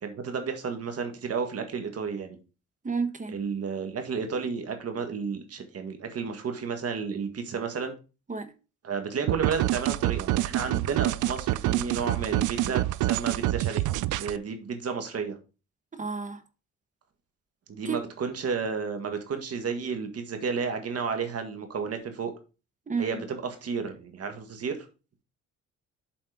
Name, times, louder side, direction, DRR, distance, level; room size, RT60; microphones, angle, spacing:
voice 1, 0.0-2.4 3.3-7.9 8.8-13.9 14.2-15.4 17.7-22.3 23.0-24.8, right 5 dB, 55° right, 1.9 m, -32 dB
voice 2, 2.8-3.4 8.3-8.5 15.9-16.4 17.8-18.0 22.9-23.2, right 5 dB, 25° right, 1.1 m, -31 dB
sound 1, 9.3-14.4, right 16 dB, 80° right, 0.5 m, -27 dB
7.6 x 4.3 x 5.1 m
cardioid pair, 90°, 30 cm